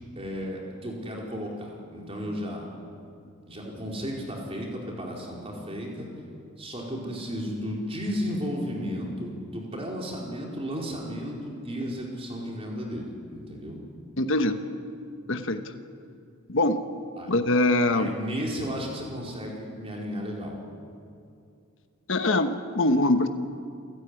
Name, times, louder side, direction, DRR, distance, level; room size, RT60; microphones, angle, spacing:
voice 1, 0.2-2.7 3.4-6.1 6.6-13.8 17.2-17.3 17.9-20.6, equal, 25° right, -1 dB, 4.5 m, -34 dB
voice 2, 14.2-14.6 15.3-15.6 16.5-16.8 17.3-18.1 22.1-23.3, left 2 dB, 60° left, 8 dB, 1.2 m, -23 dB
28.0 x 13.5 x 9.8 m, 2.5 s
head